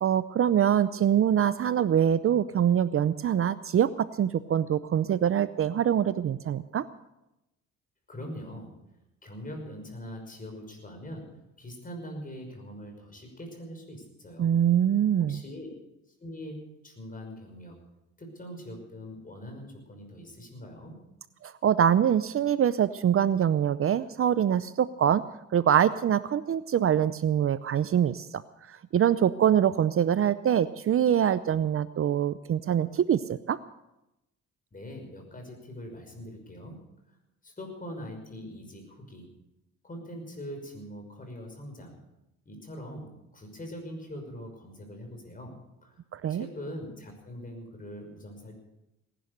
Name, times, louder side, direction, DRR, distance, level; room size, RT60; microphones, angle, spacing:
voice 1, 0.0-6.8 14.4-15.4 21.4-25.2 25.5-28.3 28.7-33.6 46.1-46.5, right 9 dB, 45° right, 15 dB, 0.6 m, -24 dB
voice 2, 8.1-8.8 9.2-14.5 15.2-15.8 16.2-17.8 18.2-21.0 34.7-36.8 37.4-39.3 39.8-42.0 42.5-45.5 45.8-46.0 46.3-48.6, equal, 25° left, 3 dB, 5.8 m, -42 dB
19.0 x 11.0 x 6.6 m, 0.90 s
cardioid pair, 90°, 30 cm